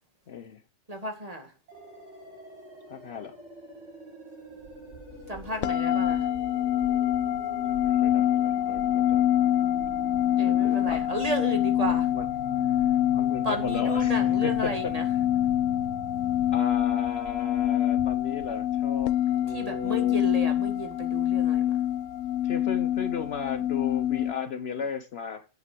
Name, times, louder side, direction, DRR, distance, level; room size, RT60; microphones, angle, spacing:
voice 1, 0.3-0.6 2.9-3.3 7.7-9.3 10.4-11.0 11.9-12.2 12.6-14.1 14.4-14.7 16.5-20.2 22.4-25.5, left 7 dB, 60° left, 0.8 m, -35 dB
voice 2, 0.9-1.5 5.3-6.3 10.4-12.1 13.4-15.1 19.5-21.8, right 1 dB, 30° right, 2.1 m, -33 dB
sound 1, 1.7-16.6, equal, 55° right, 5.0 m, -44 dB
sound 2, 4.4-19.1, right 4 dB, 80° right, 2.7 m, -51 dB
sound 3, 5.6-24.3, left 11 dB, 80° left, 1.1 m, -25 dB
9.5 x 6.9 x 6.0 m
omnidirectional pair, 1.4 m